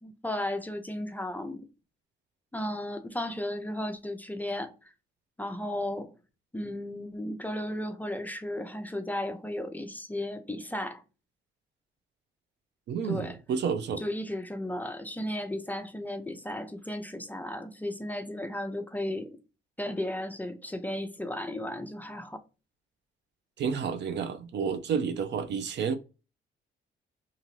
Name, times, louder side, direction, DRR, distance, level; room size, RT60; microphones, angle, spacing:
voice 1, 0.0-1.6 2.5-4.9 5.4-6.1 6.5-11.0 13.0-13.4 14.0-19.3 19.8-22.4, left 1 dB, 10° left, 0.5 m, -34 dB
voice 2, 12.9-14.0 23.6-25.9, right 6 dB, 60° right, 0.5 m, -30 dB
2.6 x 2.5 x 3.0 m
cardioid pair, 90°, 20 cm